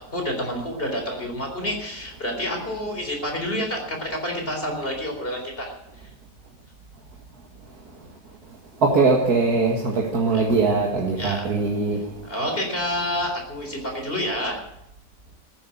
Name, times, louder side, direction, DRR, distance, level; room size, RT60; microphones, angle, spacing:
voice 1, 0.1-5.7 10.3-10.4 11.2-11.5 12.2-14.6, equal, 35° left, 4.2 m, -28 dB
voice 2, 8.8-12.0, right 4 dB, 65° right, 2.3 m, -21 dB
14.0 x 11.0 x 8.5 m
omnidirectional pair, 1.7 m